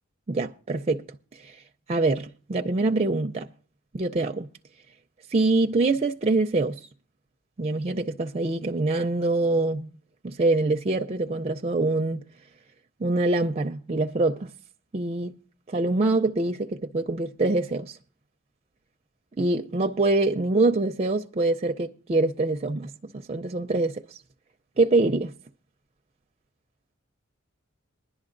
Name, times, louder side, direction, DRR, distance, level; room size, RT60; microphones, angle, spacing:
voice 1, 0.3-1.0 1.3-1.6 1.9-3.5 3.9-4.5 5.3-6.9 7.6-9.9 10.2-12.2 13.0-14.5 14.9-15.3 15.7-18.0 19.4-24.2 24.8-25.3, right 2 dB, 30° right, 0.4 m, -25 dB
21.0 x 11.0 x 2.5 m
head